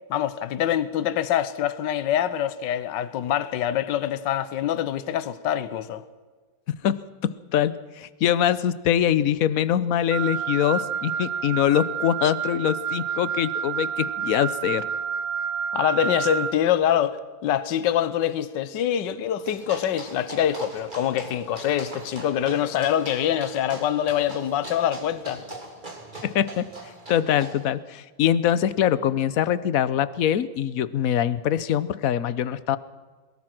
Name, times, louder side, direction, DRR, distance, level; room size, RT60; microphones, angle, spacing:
voice 1, 0.1-6.0 15.7-25.4, left 10 dB, 70° left, 1.6 m, -25 dB
voice 2, 6.8-14.9 26.2-26.7 27.1-32.8, left 10 dB, 55° left, 1.1 m, -23 dB
Wind instrument woodwind instrument, 10.1-16.5, right 7 dB, 55° right, 0.9 m, -29 dB
sound 1, 19.4-27.7, right 2 dB, 25° right, 3.1 m, -41 dB
22.5 x 22.0 x 6.1 m
omnidirectional pair, 2.0 m